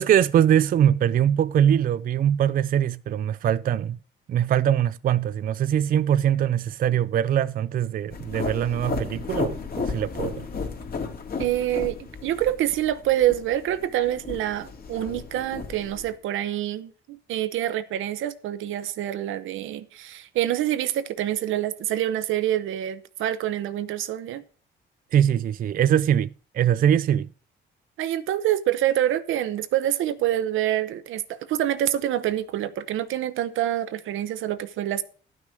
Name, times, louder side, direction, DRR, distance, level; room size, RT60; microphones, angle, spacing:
voice 1, 0.0-4.0 4.3-10.4 25.1-26.3 26.5-27.3, right 10 dB, 45° right, 0.4 m, -22 dB
sound 1, 8.1-16.1, left 4 dB, 50° left, 2.1 m, -34 dB
voice 2, 11.4-24.4 28.0-35.0, right 12 dB, 85° right, 0.8 m, -26 dB
11.5 x 6.1 x 6.4 m
cardioid pair, 90°, 20 cm